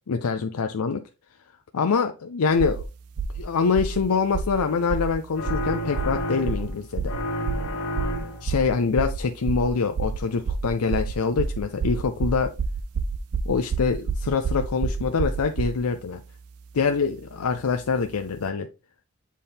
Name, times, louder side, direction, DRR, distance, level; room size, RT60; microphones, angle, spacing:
voice 1, 0.1-1.0 1.7-2.9 3.4-7.1 8.4-12.5 13.5-16.2 16.7-18.7, left 5 dB, 75° left, 6 dB, 0.5 m, -25 dB
sound 1, 2.6-2.8 3.2-3.4 3.7-4.0 4.3-4.6 4.9-5.1 5.5-5.7 6.0-6.2 6.5-6.7 7.0-7.2 7.5-7.7 8.0-8.2 8.5-8.7 9.0-9.2 9.5-9.7 10.0-10.2 10.5-15.8, right 5 dB, 75° right, 0.5 m, -28 dB
sound 2, 5.3-6.8 7.1-8.6, left 1 dB, 60° left, 1.1 m, -30 dB
7.5 x 4.1 x 3.5 m, 0.29 s
head